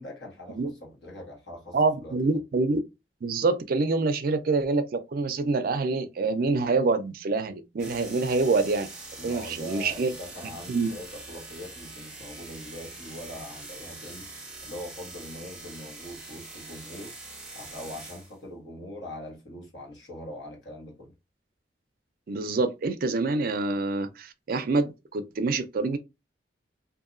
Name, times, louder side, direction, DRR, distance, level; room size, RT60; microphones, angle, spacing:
voice 1, 0.0-2.4 9.2-14.3 14.6-17.1 17.5-21.1, left 1 dB, 70° left, 1.4 m, -42 dB
voice 2, 1.7-2.8 3.2-8.9 9.2-10.1 10.7-10.9 22.3-26.0, right 3 dB, 50° right, 0.4 m, -26 dB
sound 1, 7.8-18.3, right 2 dB, 5° right, 0.7 m, -43 dB
2.7 x 2.6 x 2.5 m
head